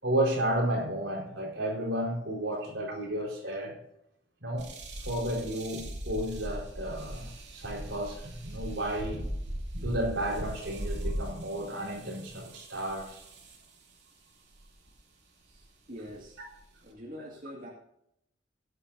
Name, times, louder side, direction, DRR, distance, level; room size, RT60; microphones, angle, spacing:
voice 1, 0.0-3.8 4.4-4.7 5.0-9.3 9.7-13.2 16.4-16.5, right 1 dB, 75° right, 4.2 m, -32 dB
sound 1, 4.6-13.7 14.5-14.9 15.6-15.7 16.1-16.9, equal, 60° right, 2.7 m, -39 dB
voice 2, 15.5-16.4 16.8-17.7, equal, 45° right, 2.0 m, -45 dB
17.0 x 10.5 x 2.7 m
head